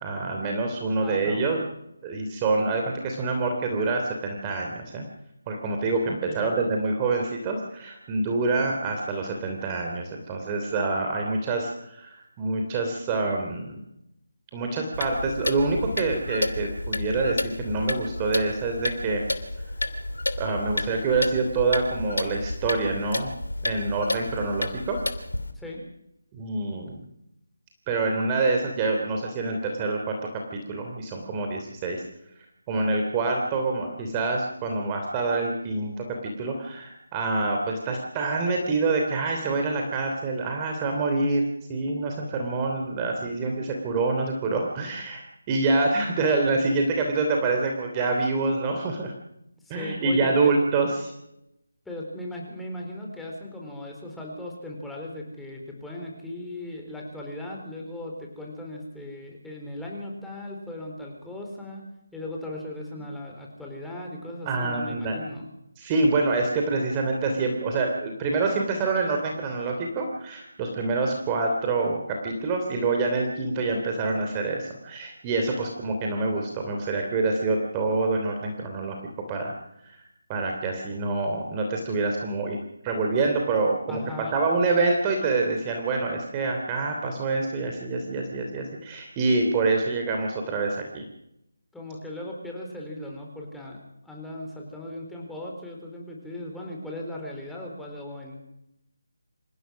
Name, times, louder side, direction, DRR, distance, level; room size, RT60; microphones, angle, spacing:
voice 1, 0.0-1.6 2.0-5.1 5.5-13.7 14.5-19.2 20.4-23.3 23.6-25.0 26.3-27.0 27.9-30.1 30.5-32.0 32.7-41.4 41.7-49.1 49.7-51.1 64.5-65.2 65.8-79.0 79.3-79.5 79.8-80.0 80.3-82.6 82.8-84.0 84.3-91.0, right 3 dB, 20° right, 2 dB, 3.1 m, -26 dB
voice 2, 1.0-1.6 6.1-6.6 25.5-25.8 49.6-50.5 51.9-61.8 62.1-65.5 83.9-84.3 91.7-98.4, left 1 dB, 5° left, -1 dB, 4.1 m, -38 dB
Clock, 14.9-25.5, left 2 dB, 80° left, 2.9 m, -31 dB
27.0 x 16.0 x 6.4 m, 0.81 s
figure-of-eight pair, 155°, 0 cm